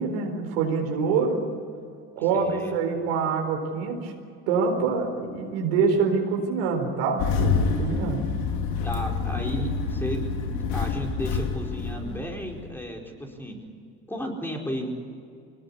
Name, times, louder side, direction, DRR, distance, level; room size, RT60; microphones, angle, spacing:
voice 1, 0.0-1.4 2.2-4.1 4.5-8.3, right 5 dB, 85° right, 3 dB, 4.4 m, -25 dB
voice 2, 2.3-2.7 8.8-13.6 14.1-14.9, equal, 5° left, 1 dB, 4.8 m, -33 dB
Engine starting, 7.2-12.7, left 5 dB, 80° left, 2.9 m, -27 dB
22.0 x 20.0 x 8.5 m, 2.4 s
supercardioid pair, 90°, 29 cm